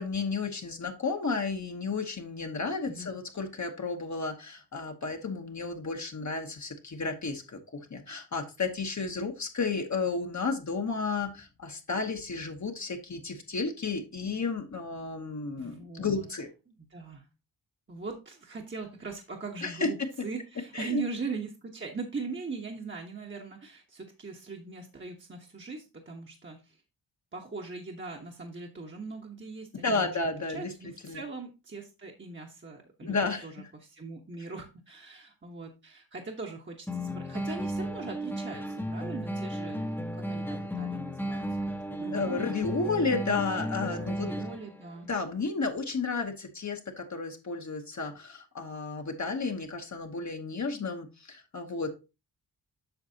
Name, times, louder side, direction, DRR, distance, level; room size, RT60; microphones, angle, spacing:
voice 1, 0.0-16.5 19.6-20.1 20.7-21.0 29.8-31.2 33.0-33.7 42.0-44.3 45.1-51.9, left 4 dB, 40° left, 3 dB, 1.1 m, -32 dB
voice 2, 15.6-16.3 16.7-17.3 17.9-20.0 20.2-26.8 27.3-30.2 30.5-39.8 40.2-42.5 44.0-45.1, right 4 dB, 25° right, 1 dB, 1.1 m, -40 dB
sound 1, 36.9-44.8, equal, 5° left, 0.9 m, -34 dB
8.0 x 6.0 x 2.8 m, 0.28 s
cardioid pair, 75°, 42 cm